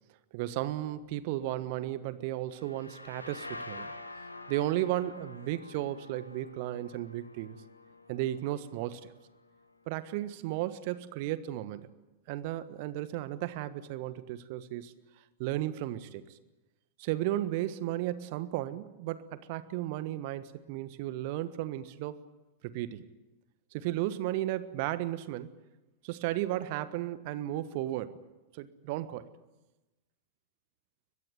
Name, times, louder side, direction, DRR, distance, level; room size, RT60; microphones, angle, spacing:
voice 1, 0.3-3.9 4.5-7.6 8.1-9.1 9.9-11.9 12.3-14.9 15.4-16.2 17.0-22.2 22.6-23.1 23.7-25.5 26.0-28.2 28.5-29.3, right 14 dB, 50° right, 14 dB, 1.3 m, -34 dB
sound 1, 2.5-10.1, left 2 dB, 85° left, 2.2 m, -48 dB
23.0 x 21.0 x 9.2 m, 1.0 s
figure-of-eight pair, 90°, 0 cm